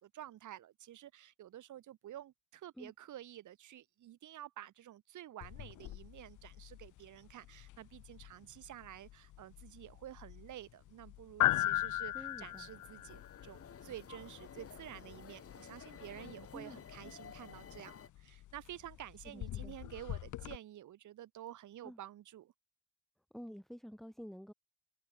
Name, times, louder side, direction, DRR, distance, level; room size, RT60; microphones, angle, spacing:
voice 1, 0.0-22.5, right 12 dB, 75° right, 8.0 m, -50 dB
sound 1, 5.4-20.6, left 15 dB, 85° left, 2.2 m, -40 dB
voice 2, 12.1-12.7 16.5-16.8 19.3-19.8 21.8-22.0 23.3-24.5, equal, ahead, 5.5 m, -49 dB
sound 2, 12.2-18.1, left 7 dB, 50° left, 4.4 m, -53 dB
open air
cardioid pair, 90°, 30 cm